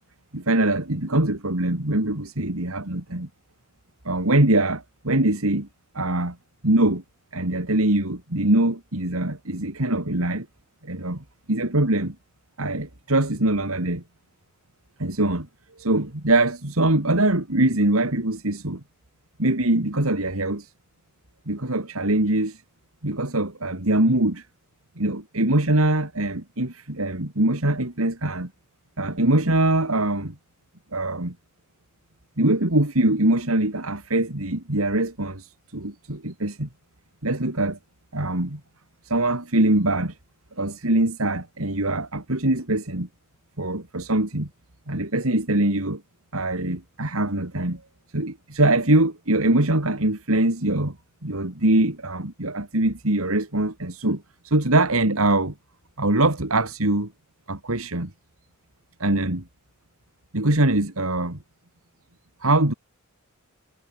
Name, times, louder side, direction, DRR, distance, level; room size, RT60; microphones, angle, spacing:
voice 1, 0.3-3.3 4.0-5.7 5.9-6.4 6.6-7.0 7.3-10.5 10.8-12.1 12.6-14.0 15.0-15.5 15.8-18.8 19.4-20.7 21.5-22.6 23.0-24.4 25.0-28.5 29.0-30.3 30.9-31.3 32.4-35.5 35.7-36.7 37.2-37.8 38.1-38.6 39.1-40.1 40.6-43.1 43.6-44.5 44.9-46.0 46.3-47.8 48.1-51.0 51.2-55.5 56.0-57.1 57.5-58.1 59.0-59.4 60.3-61.4 62.4-62.7, right 1 dB, 85° right, 3.4 m, -23 dB
head